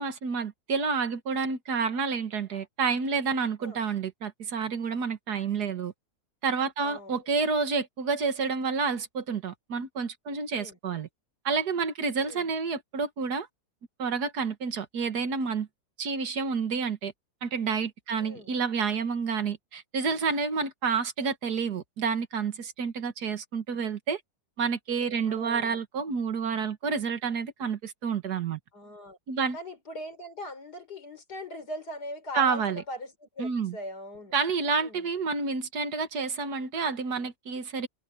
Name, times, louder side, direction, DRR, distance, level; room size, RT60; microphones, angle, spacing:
voice 1, 0.0-5.9 6.4-11.1 11.5-13.5 14.0-15.7 16.0-17.1 17.4-24.2 24.6-28.6 29.3-29.6 32.3-32.8 33.4-33.8 34.3-37.9, right 5 dB, 75° right, 2.1 m, -29 dB
voice 2, 6.8-7.2 10.5-10.8 12.2-12.5 18.2-18.5 25.3-25.8 28.7-29.2 29.5-34.3 34.7-35.1, left 1 dB, 80° left, 4.8 m, -40 dB
omnidirectional pair, 1.7 m